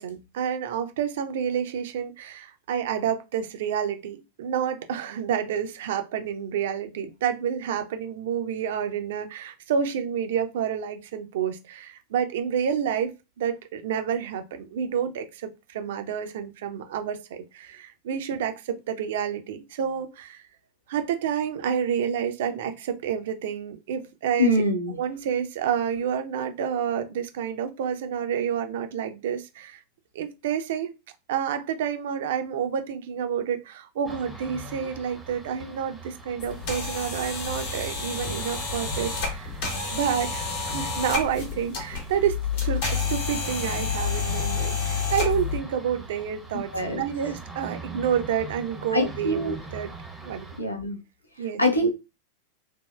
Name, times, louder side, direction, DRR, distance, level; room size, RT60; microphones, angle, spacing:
voice 1, 0.0-20.4 20.9-24.6 24.9-29.8 30.1-30.9 31.3-39.6 39.9-49.9 50.2-50.5 51.4-51.6, right 8 dB, 55° right, 0.4 m, -29 dB
voice 2, 24.4-24.9 46.7-47.0 48.9-49.6 50.6-51.0 51.6-51.9, left 1 dB, 85° left, 0.5 m, -23 dB
sound 1, 34.0-50.6, right 3 dB, ahead, 0.6 m, -42 dB
sound 2, 36.4-45.6, left 5 dB, 50° left, 0.9 m, -29 dB
3.3 x 2.1 x 2.2 m
figure-of-eight pair, 90°, 0 cm